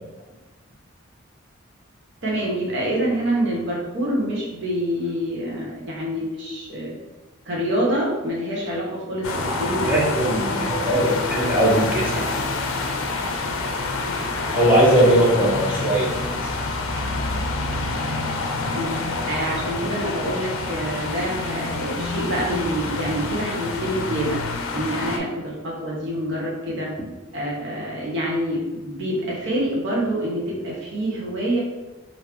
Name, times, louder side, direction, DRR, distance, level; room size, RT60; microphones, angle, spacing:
voice 1, 2.2-6.9 7.5-10.6 15.1-15.3 18.7-24.4 24.7-26.9 27.3-31.6, right 1 dB, 55° right, -3 dB, 0.9 m, -26 dB
sound 1, 9.2-25.2, left 3 dB, 75° left, 0.5 m, -27 dB
voice 2, 9.8-12.3 14.5-16.1, right 1 dB, 5° right, -5 dB, 0.8 m, -19 dB
3.4 x 2.7 x 2.9 m, 1.2 s
head